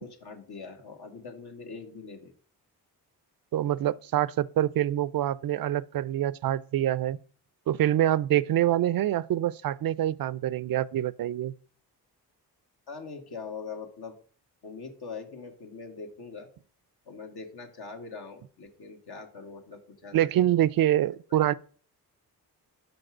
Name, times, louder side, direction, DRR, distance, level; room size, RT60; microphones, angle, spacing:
voice 1, 0.0-2.3 12.9-14.1 14.6-16.5 17.0-20.2, left 4 dB, 70° left, 1.6 m, -42 dB
voice 2, 3.5-7.2 7.7-11.5 20.1-21.5, right 12 dB, 60° right, 0.5 m, -25 dB
6.0 x 5.2 x 6.0 m
cardioid pair, 70°, 40 cm